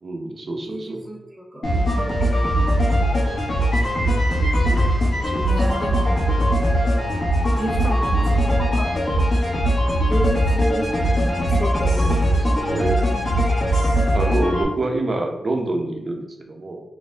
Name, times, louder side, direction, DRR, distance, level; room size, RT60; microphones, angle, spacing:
voice 1, 0.0-1.1 4.7-4.9 5.2-5.8 6.4-6.6 12.0-13.1 14.1-16.8, right 2 dB, 50° right, 2 dB, 0.5 m, -27 dB
voice 2, 0.7-1.7 2.2-2.9 5.4-6.3 7.6-9.3 9.8-12.4, right 1 dB, 10° right, -2 dB, 0.7 m, -31 dB
sound 1, 1.6-14.6, equal, 60° left, 0.8 m, -20 dB
2.4 x 2.0 x 3.3 m, 0.98 s
cardioid pair, 65°, 0 cm